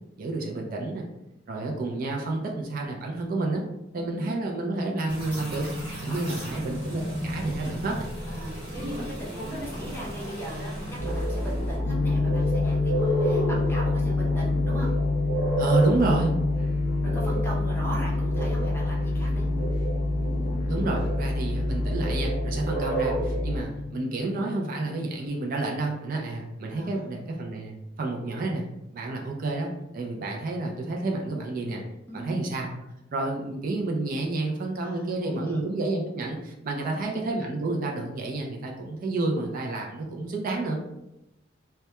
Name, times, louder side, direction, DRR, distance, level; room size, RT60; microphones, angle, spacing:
voice 1, 0.2-1.1 1.5-3.6 3.9-5.7 6.0-8.1 15.6-16.3 20.7-28.7 28.9-31.8 32.1-32.7 33.1-40.8, right 2 dB, 50° right, 0 dB, 0.4 m, -30 dB
voice 2, 3.9-4.3 6.1-6.6 8.3-14.9 16.5-16.6 17.0-19.4 26.7-27.1 32.1-32.5 34.8-35.6 36.8-37.1, right 1 dB, 10° left, -4 dB, 0.6 m, -39 dB
sound 1, 5.1-11.8, equal, 25° right, 1.0 m, -35 dB
sound 2, 11.0-23.6, equal, 75° right, 1.1 m, -28 dB
sound 3, 11.8-25.3, left 4 dB, 65° left, 0.4 m, -30 dB
2.2 x 2.1 x 2.8 m, 0.89 s
head